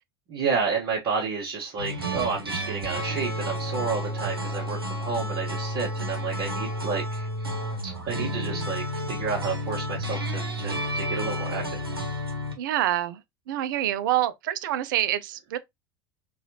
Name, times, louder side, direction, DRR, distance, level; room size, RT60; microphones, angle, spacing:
voice 1, 0.3-7.3 7.8-11.8, right 5 dB, 45° right, 1.2 m, -31 dB
sound 1, 1.8-12.6, equal, 85° right, 0.8 m, -31 dB
voice 2, 8.2-8.7 12.6-15.6, right 12 dB, 60° right, 0.4 m, -27 dB
4.0 x 2.4 x 2.8 m
figure-of-eight pair, 75°, 12 cm